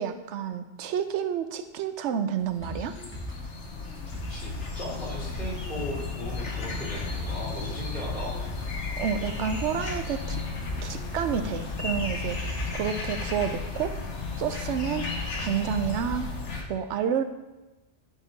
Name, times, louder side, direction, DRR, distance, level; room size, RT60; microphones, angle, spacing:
voice 1, 0.0-2.9 9.0-10.4 10.8-14.0 14.4-15.1 15.4-16.3 16.7-17.2, right 8 dB, 80° right, 9 dB, 0.9 m, -29 dB
sound 1, 2.4-16.6, left 4 dB, 75° left, 1.3 m, -34 dB
sound 2, 2.6-12.7 13.0-13.1, equal, 10° left, 1.3 m, -40 dB
voice 2, 4.3-8.4, equal, 55° left, -8 dB, 2.8 m, -37 dB
10.5 x 3.7 x 4.0 m, 1.1 s
omnidirectional pair, 1.2 m